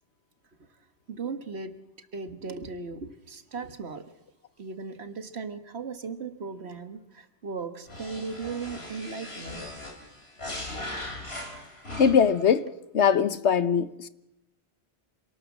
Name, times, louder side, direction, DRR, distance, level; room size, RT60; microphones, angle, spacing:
voice 1, 1.1-1.8 2.1-4.1 4.6-9.7, right 4 dB, 75° right, 1.8 m, -37 dB
sound 1, 7.9-12.4, left 1 dB, 70° left, 4.0 m, -39 dB
voice 2, 12.0-14.1, left 7 dB, 90° left, 1.3 m, -22 dB
27.0 x 19.0 x 7.4 m
omnidirectional pair, 1.1 m